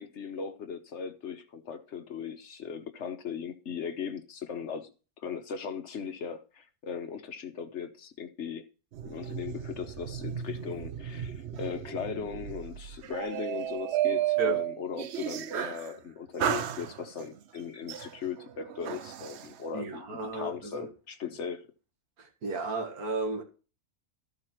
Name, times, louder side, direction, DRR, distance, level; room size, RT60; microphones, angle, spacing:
voice 1, 0.0-4.9 5.2-8.6 9.1-20.0 20.3-21.6, left 7 dB, 55° left, 1.1 m, -38 dB
sound 1, 8.9-15.9 16.4-17.3 17.9-19.5, right 12 dB, 60° right, 0.8 m, -33 dB
voice 2, 19.7-20.9 22.2-23.4, right 2 dB, 85° right, 2.2 m, -33 dB
13.5 x 4.8 x 4.4 m
omnidirectional pair, 1.5 m